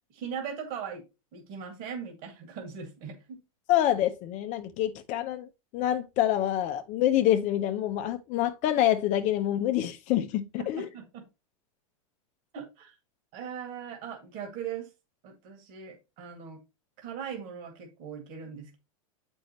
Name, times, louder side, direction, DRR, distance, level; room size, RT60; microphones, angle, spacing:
voice 1, 0.1-1.0 1.3-3.4 10.6-11.3 12.5-13.0 13.3-14.9 15.2-16.6 17.0-18.8, right 7 dB, 50° right, 2.2 m, -39 dB
voice 2, 3.7-5.5 5.7-10.9, left 12 dB, 45° left, 0.6 m, -26 dB
7.7 x 5.3 x 3.0 m
hypercardioid pair, 115°, 18 cm